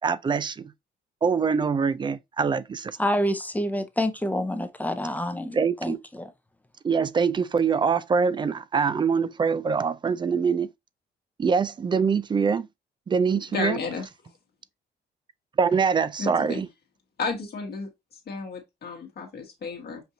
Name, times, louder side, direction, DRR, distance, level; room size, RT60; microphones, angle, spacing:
voice 1, 0.0-0.7 1.2-3.0 5.5-6.0 6.8-10.7 11.4-12.7 13.1-13.8 15.6-16.7, right 5 dB, 25° right, 0.3 m, -24 dB
voice 2, 3.0-6.3, equal, 10° left, 0.7 m, -27 dB
voice 3, 13.5-14.1 16.2-16.6 17.2-17.9 18.3-20.0, left 4 dB, 50° left, 1.2 m, -32 dB
5.9 x 2.6 x 2.6 m
cardioid pair, 90°, 20 cm